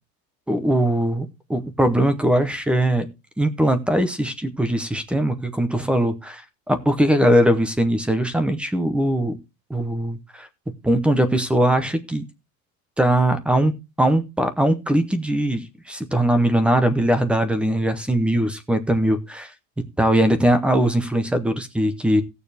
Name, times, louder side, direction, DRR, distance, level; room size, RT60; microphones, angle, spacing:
voice 1, 0.5-3.1 3.4-6.4 6.7-9.4 9.7-10.5 10.8-12.2 13.0-13.7 14.0-19.5 20.0-22.2, right 1 dB, ahead, 11 dB, 0.6 m, -20 dB
17.5 x 6.8 x 3.4 m, 0.26 s
supercardioid pair, 165°, 50 cm